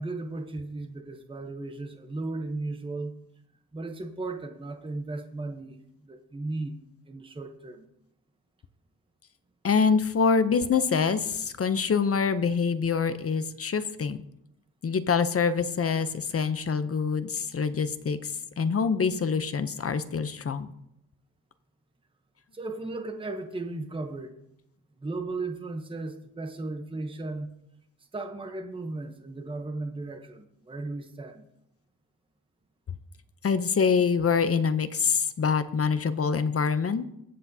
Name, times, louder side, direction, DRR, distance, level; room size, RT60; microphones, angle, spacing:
voice 1, 0.0-3.1 3.7-6.8 7.1-7.9 22.5-24.4 25.0-27.5 28.1-31.4, right 2 dB, 15° right, 5 dB, 0.8 m, -36 dB
voice 2, 9.6-14.2 14.8-20.7 33.4-37.2, left 5 dB, 40° left, 12 dB, 0.6 m, -25 dB
22.5 x 8.1 x 2.7 m, 0.82 s
wide cardioid pair, 175°, 38 cm